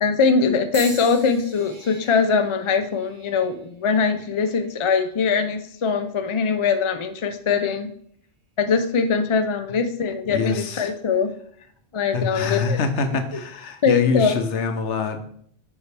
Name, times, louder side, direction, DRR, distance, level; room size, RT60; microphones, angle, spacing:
voice 1, 0.0-7.9 8.6-11.3 11.9-12.8 13.8-14.4, left 5 dB, 40° left, 7 dB, 0.4 m, -22 dB
sound 1, 0.7-4.9 5.6-6.0 7.0-7.2, equal, 20° right, 1.2 m, -41 dB
voice 2, 10.3-10.9 12.1-15.2, left 4 dB, 70° left, 7 dB, 1.1 m, -25 dB
7.0 x 5.7 x 3.3 m, 0.62 s
omnidirectional pair, 1.2 m